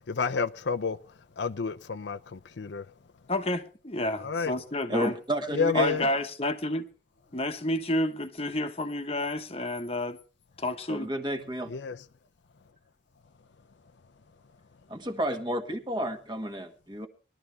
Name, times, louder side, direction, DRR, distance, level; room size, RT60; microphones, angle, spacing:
voice 1, 0.1-1.0 1.4-2.9 4.2-4.5 5.5-6.1 11.7-12.0, left 5 dB, 70° left, 0.6 m, -30 dB
voice 2, 3.3-5.1 5.7-6.8 7.3-10.2 10.6-11.1, left 1 dB, 30° left, 1.1 m, -30 dB
voice 3, 4.9-5.9 10.9-11.7 14.9-17.1, equal, 25° right, 1.5 m, -31 dB
20.5 x 12.5 x 3.3 m
head